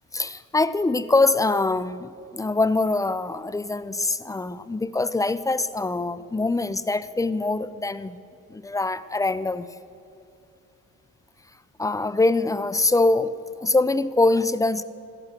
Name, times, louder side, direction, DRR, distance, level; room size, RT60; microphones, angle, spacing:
voice 1, 0.1-8.2 8.5-9.7 11.8-13.3 13.6-14.8, left 2 dB, 10° left, 15 dB, 0.5 m, -23 dB
13.5 x 11.0 x 6.7 m, 2.6 s
cardioid pair, 90°, 30 cm